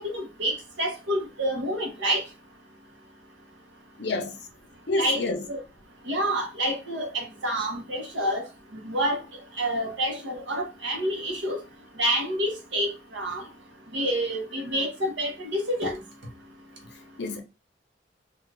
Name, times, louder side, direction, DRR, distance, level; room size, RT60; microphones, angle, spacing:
voice 1, 0.0-2.2 5.0-5.2 5.5-5.6 6.1-8.5 8.8-9.2 9.6-11.6 12.0-13.4 13.9-16.0, equal, 85° right, 0.9 m, -28 dB
voice 2, 4.0-4.4 4.9-5.5 17.2-17.4, left 2 dB, 65° left, 0.6 m, -28 dB
2.4 x 2.4 x 3.2 m
head